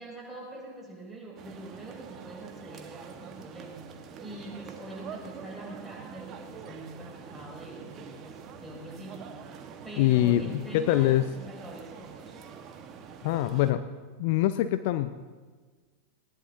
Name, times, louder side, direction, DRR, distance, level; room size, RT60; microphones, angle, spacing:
voice 1, 0.0-9.4 9.8-12.4, right 1 dB, 5° right, -4 dB, 6.0 m, -44 dB
sound 1, 1.4-13.7, right 7 dB, 30° right, 1.3 m, -46 dB
voice 2, 10.0-11.3 13.2-13.8 14.2-15.2, left 14 dB, 50° left, 11 dB, 0.6 m, -24 dB
19.5 x 19.0 x 2.7 m, 1.4 s
figure-of-eight pair, 90°, 0 cm